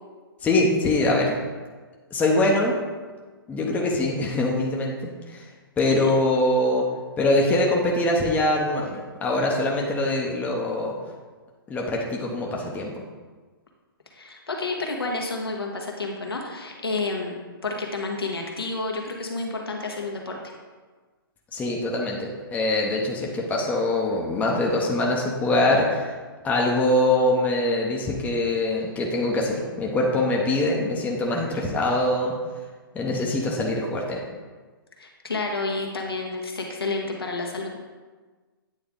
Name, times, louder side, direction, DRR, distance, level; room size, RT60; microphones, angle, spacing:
voice 1, 0.4-1.4 2.1-2.7 3.5-5.4 5.8-6.9 7.2-11.0 11.7-12.9 21.5-26.1 26.4-32.3 32.9-34.2, left 1 dB, 10° left, -2 dB, 0.8 m, -23 dB
voice 2, 5.8-6.1 14.1-20.4 35.0-37.8, left 3 dB, 85° left, 0 dB, 1.3 m, -30 dB
8.8 x 3.4 x 3.8 m, 1.4 s
figure-of-eight pair, 125°, 12 cm